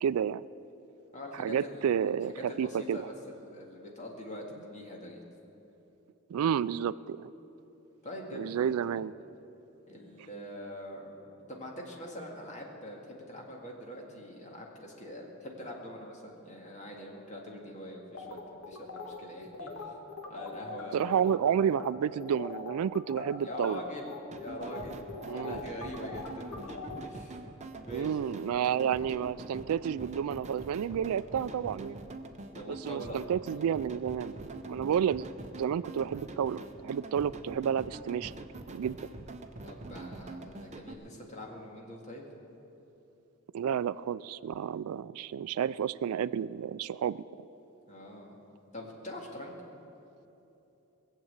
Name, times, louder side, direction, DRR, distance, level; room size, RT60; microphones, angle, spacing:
voice 1, 0.0-0.5 1.4-3.0 6.3-7.3 8.3-9.1 20.9-23.8 25.3-25.6 27.9-32.0 32.7-35.3 35.6-38.3 38.7-39.0 43.5-47.2, right 8 dB, 80° right, 19 dB, 0.3 m, -30 dB
voice 2, 1.1-1.9 2.4-5.2 8.0-8.7 9.9-19.9 20.3-21.3 23.4-25.1 25.3-27.5 27.8-28.3 32.5-33.2 39.6-42.3 47.9-48.4 48.7-49.6, equal, 35° left, -1 dB, 2.0 m, -44 dB
sound 1, 18.1-21.4 21.7-21.9 22.2-27.0, left 3 dB, 70° left, 1.4 m, -42 dB
sound 2, 24.3-40.9, right 2 dB, 30° right, 0.7 m, -44 dB
19.5 x 7.5 x 8.1 m, 3.0 s
head